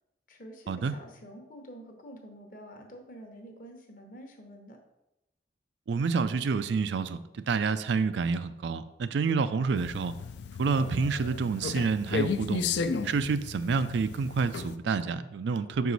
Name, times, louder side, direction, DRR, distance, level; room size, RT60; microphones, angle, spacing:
voice 1, 0.3-4.8, equal, 45° left, 3 dB, 0.9 m, -48 dB
voice 2, 5.9-10.1 10.6-12.6 13.0-15.9, right 5 dB, 75° right, 12 dB, 0.4 m, -28 dB
sound 1, 9.7-14.8, left 5 dB, 70° left, 0.4 m, -34 dB
6.0 x 4.7 x 4.0 m, 0.91 s
head